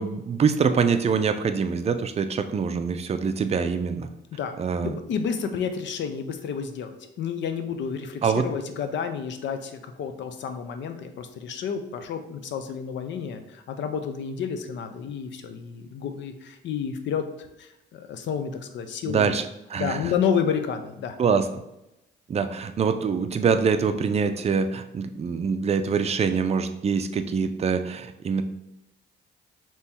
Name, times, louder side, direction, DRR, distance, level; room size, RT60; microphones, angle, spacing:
voice 1, 0.0-4.1 4.6-4.9 8.2-8.5 19.1-20.0 21.2-21.6 22.3-28.4, right 6 dB, 30° right, 8 dB, 0.4 m, -24 dB
voice 2, 4.8-19.4 19.8-21.3, left 7 dB, 65° left, 7 dB, 0.6 m, -30 dB
3.4 x 3.0 x 4.3 m, 0.87 s
cardioid pair, 90°, 20 cm